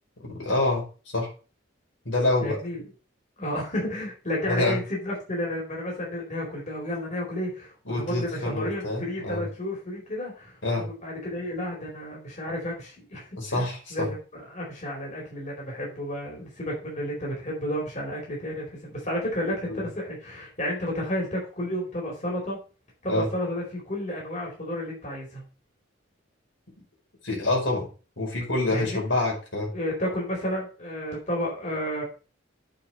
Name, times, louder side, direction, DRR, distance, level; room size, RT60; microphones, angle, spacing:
voice 1, 0.2-0.8 1.1-1.3 2.0-2.6 4.5-4.8 7.9-9.4 10.6-10.9 13.4-14.1 19.7-19.9 23.1-23.3 27.2-27.9 28.2-29.7, left 2 dB, 75° left, -2 dB, 5.0 m, -26 dB
voice 2, 2.4-2.8 3.4-22.6 23.0-25.4 28.7-29.0 29.7-32.0, left 1 dB, 40° left, -3 dB, 4.3 m, -32 dB
8.7 x 5.3 x 6.3 m, 0.35 s
head